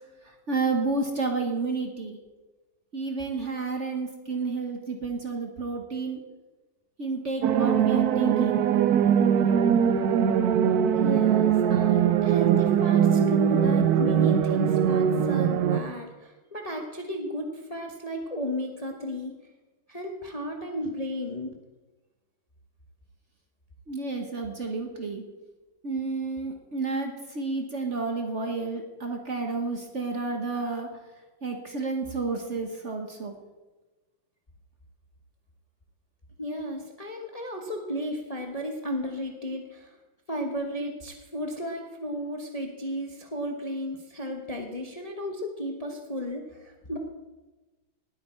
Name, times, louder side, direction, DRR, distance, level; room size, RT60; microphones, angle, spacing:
voice 1, 0.5-2.2 2.9-6.2 7.0-8.6 23.9-25.2 25.8-30.9 31.4-33.3, right 3 dB, 40° right, 3 dB, 1.3 m, -30 dB
sound 1, 7.4-15.8, right 8 dB, 65° right, 1.0 m, -21 dB
voice 2, 10.9-19.4 19.9-21.6 36.4-40.0 40.3-47.0, equal, 25° left, 2 dB, 1.0 m, -34 dB
19.0 x 8.6 x 4.4 m, 1.2 s
omnidirectional pair, 2.2 m